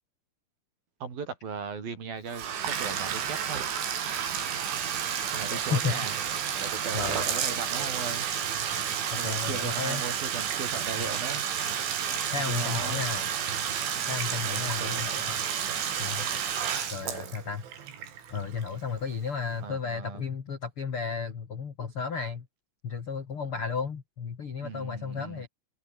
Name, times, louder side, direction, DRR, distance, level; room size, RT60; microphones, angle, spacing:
voice 1, 1.0-3.7 5.3-6.1 6.6-8.3 9.2-11.4 12.5-13.0 14.5-15.1 19.6-20.2 24.6-25.4, right 5 dB, 50° right, 6.0 m, -37 dB
Bathtub (filling or washing), 2.3-19.0, right 8 dB, 75° right, 6.2 m, -31 dB
voice 2, 5.5-6.0 6.9-7.6 9.2-10.0 12.3-13.2 14.1-15.4 16.0-16.3 16.9-17.6 18.3-22.4 22.8-25.5, left 5 dB, 45° left, 1.8 m, -33 dB
omnidirectional pair, 5.6 m